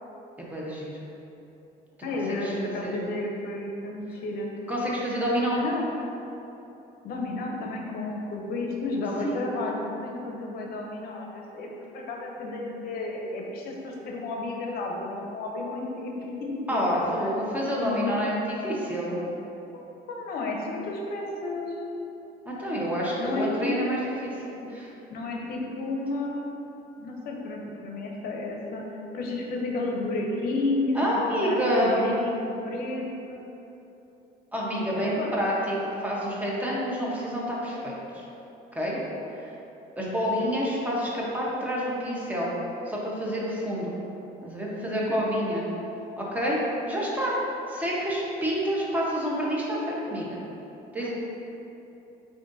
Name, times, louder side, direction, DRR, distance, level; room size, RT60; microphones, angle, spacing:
voice 1, 0.4-0.9 2.4-2.9 4.7-5.6 9.2-9.4 16.7-19.2 22.4-24.4 24.6-24.9 30.9-32.0 34.5-35.8 36.0-38.2 38.7-39.0 40.0-42.5 42.9-43.9 44.4-45.7 46.2-46.6 46.9-47.3 47.7-50.3 50.9-51.1, equal, 10° right, -5 dB, 0.9 m, -28 dB
voice 2, 2.0-4.5 5.5-5.8 7.0-16.8 17.2-17.3 17.8-18.2 19.7-21.8 23.2-23.7 25.1-26.5 27.0-28.8 29.1-33.5 35.0-35.3 40.3-40.4 44.7-45.1 51.0-51.1, left 2 dB, 65° left, 0 dB, 0.6 m, -32 dB
7.4 x 2.5 x 2.6 m, 3.0 s
cardioid pair, 110°, 17 cm